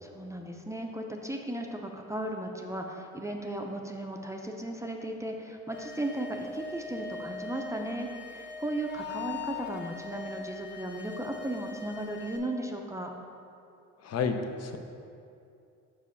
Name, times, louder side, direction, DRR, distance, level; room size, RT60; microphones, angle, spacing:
voice 1, 0.0-13.1, right 1 dB, 10° right, 2 dB, 0.5 m, -36 dB
sound 1, 5.7-12.4, left 4 dB, 40° left, 1.1 m, -41 dB
voice 2, 14.0-14.8, left 5 dB, 55° left, 6 dB, 0.7 m, -30 dB
5.6 x 5.0 x 5.6 m, 2.5 s
cardioid pair, 90°, 30 cm